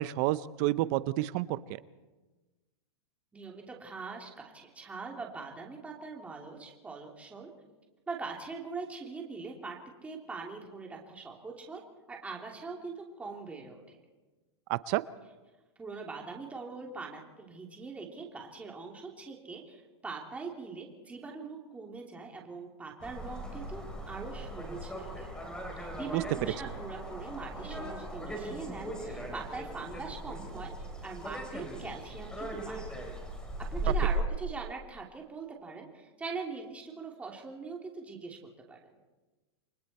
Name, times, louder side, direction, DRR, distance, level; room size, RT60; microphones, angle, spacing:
voice 1, 0.0-1.6 14.7-15.0 26.1-26.5, right 16 dB, 45° right, 16 dB, 0.7 m, -29 dB
voice 2, 3.3-7.5 8.1-11.8 12.1-14.0 15.8-25.3 25.8-30.7 31.0-32.8 33.7-38.4 38.7-38.8, right 4 dB, 10° right, 0 dB, 2.9 m, -42 dB
sound 1, 23.0-34.2, right 2 dB, 5° left, 4.1 m, -38 dB
29.5 x 23.5 x 4.3 m, 1.2 s
supercardioid pair, 155°, 14 cm